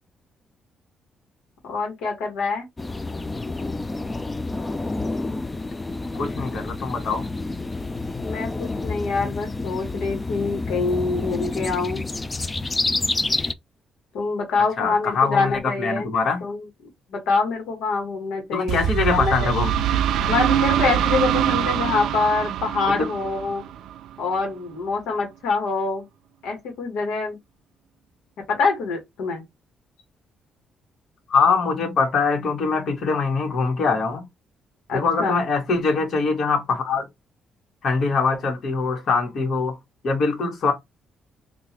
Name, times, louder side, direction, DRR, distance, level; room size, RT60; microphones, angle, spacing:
voice 1, 1.6-2.7 8.2-12.1 14.1-16.1 16.4-16.6 17.1-19.5 20.3-23.6 24.2-26.1 26.4-27.4 28.5-29.4 34.9-35.4, left 4 dB, 90° left, 1.2 m, -25 dB
sound 1, 2.8-13.5, left 2 dB, 20° left, 0.4 m, -29 dB
voice 2, 6.1-7.3 14.8-16.4 18.5-19.7 22.8-23.0 31.3-34.3 34.9-37.1 37.8-39.8 40.0-40.7, left 4 dB, 60° left, 1.4 m, -23 dB
sound 2, 18.7-24.3, right 10 dB, 80° right, 0.3 m, -24 dB
3.8 x 2.4 x 2.9 m
cardioid pair, 90°, 0 cm